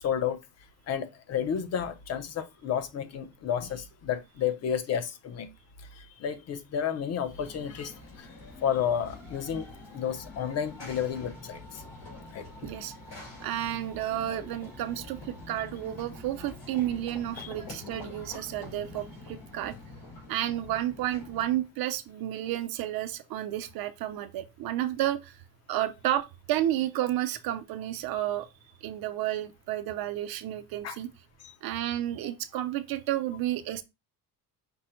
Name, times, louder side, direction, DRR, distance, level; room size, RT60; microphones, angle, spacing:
voice 1, 0.0-0.4 0.9-5.5 6.0-8.3 8.6-11.6 12.3-12.5 17.4-17.5 30.8-31.0 31.4-31.5, left 8 dB, 40° left, 0.6 m, -31 dB
Run / Train, 7.3-21.7, left 2 dB, 80° left, 3.0 m, -46 dB
voice 2, 12.6-12.9 13.4-19.7 20.3-25.3 25.7-28.5 28.8-31.1 31.6-33.8, right 13 dB, 65° right, 0.6 m, -31 dB
5.3 x 2.1 x 4.3 m
cardioid pair, 155°, 38 cm